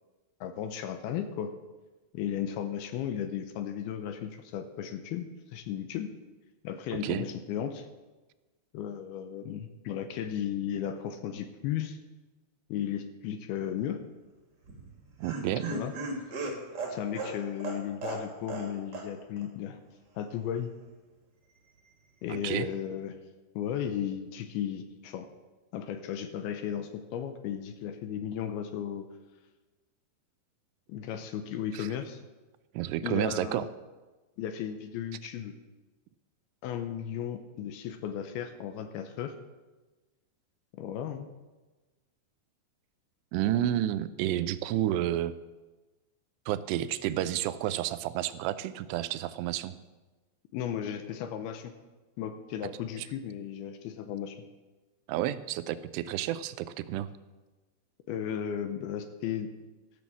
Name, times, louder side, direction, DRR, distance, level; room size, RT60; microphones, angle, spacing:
voice 1, 0.4-1.5 2.1-6.1 6.6-7.9 8.7-12.0 12.7-14.0 15.7-15.9 16.9-19.8 20.2-20.7 22.2-23.2 23.6-25.3 25.7-29.1 30.9-32.2 33.0-33.7 34.4-35.5 36.6-39.4 40.7-41.3 50.5-51.7 52.2-54.4 58.1-59.5, left 9 dB, 80° left, 8 dB, 2.4 m, -35 dB
voice 2, 6.9-7.3 15.2-15.8 22.3-22.7 31.7-31.9 32.7-33.6 43.3-45.3 46.5-49.8 53.0-53.1 55.1-57.1, right 12 dB, 90° right, 13 dB, 2.7 m, -30 dB
Laughter, 14.6-18.7 18.9-19.1 19.4-19.5, right 2 dB, 50° right, 1.2 m, -36 dB
14.0 x 6.2 x 7.3 m, 1.2 s
omnidirectional pair, 4.8 m